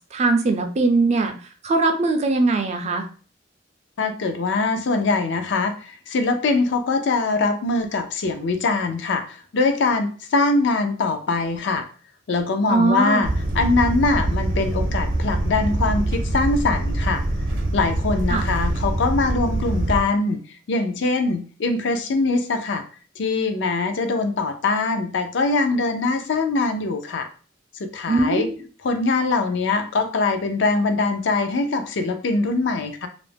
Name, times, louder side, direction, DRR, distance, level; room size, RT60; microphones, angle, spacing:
voice 1, 0.1-1.3 1.6-3.1 12.7-13.3 18.3-18.5 28.1-28.6, right 3 dB, 35° right, 5 dB, 0.4 m, -20 dB
voice 2, 4.0-11.9 12.3-17.2 17.7-20.4 20.7-22.8 23.2-27.3 27.8-28.5 28.8-33.1, left 3 dB, 65° left, 6 dB, 0.4 m, -22 dB
sound 1, 13.2-20.0, right 1 dB, 85° right, 0.6 m, -24 dB
2.4 x 2.0 x 3.2 m, 0.39 s
head